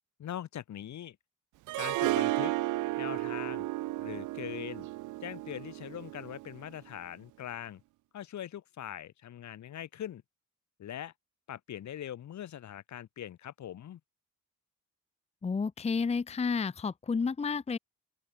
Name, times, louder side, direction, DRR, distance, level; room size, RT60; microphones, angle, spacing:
voice 1, 0.2-1.2 1.8-2.5 3.0-3.7 4.0-4.9 5.2-7.8 8.1-10.2 10.8-11.1 11.5-14.0, left 11 dB, 65° left, 3.8 m, -41 dB
Harp, 1.7-6.7, right 18 dB, 85° right, 0.6 m, -33 dB
voice 2, 15.4-17.8, left 5 dB, 20° left, 0.7 m, -31 dB
open air
cardioid pair, 90°, 30 cm